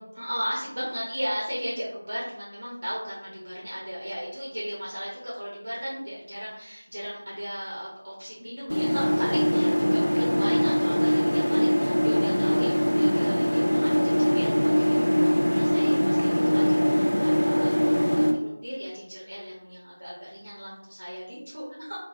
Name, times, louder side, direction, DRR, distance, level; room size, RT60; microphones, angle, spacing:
voice 1, 0.0-22.0, equal, 60° right, -6 dB, 0.7 m, -36 dB
sound 1, 8.7-18.3, equal, 75° left, 0.5 m, -22 dB
2.5 x 2.1 x 2.5 m, 0.81 s
figure-of-eight pair, 175°, 0 cm